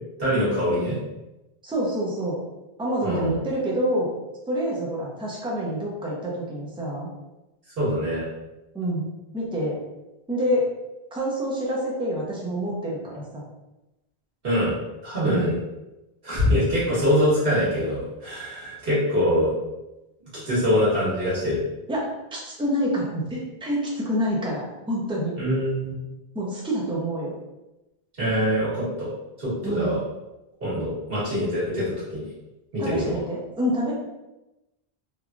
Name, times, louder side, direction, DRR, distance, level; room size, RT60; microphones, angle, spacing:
voice 1, 0.2-1.0 3.0-3.4 7.8-8.2 14.4-14.7 15.0-15.6 16.2-19.5 20.3-21.6 25.4-25.9 28.2-29.1 29.4-30.0 30.6-32.2 32.7-33.2, equal, 65° right, -9 dB, 1.7 m, -24 dB
voice 2, 1.6-2.4 2.8-4.1 4.5-7.1 8.7-9.1 9.3-9.8 10.3-10.7 11.1-13.4 15.2-15.5 21.9-25.3 26.3-27.3 29.6-29.9 32.8-33.9, equal, 5° right, -4 dB, 0.5 m, -27 dB
3.3 x 2.3 x 2.4 m, 0.99 s
omnidirectional pair, 1.0 m